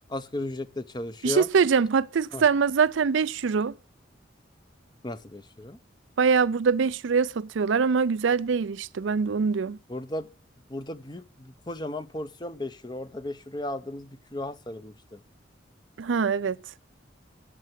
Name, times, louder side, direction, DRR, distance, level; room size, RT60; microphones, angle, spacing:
voice 1, 0.1-1.5 2.3-2.4 5.0-5.8 9.9-10.3 10.7-15.2, left 1 dB, 20° left, 0.7 m, -35 dB
voice 2, 1.2-3.7 6.2-9.8 16.0-16.6, right 5 dB, 75° right, 0.4 m, -23 dB
11.0 x 6.8 x 7.5 m
head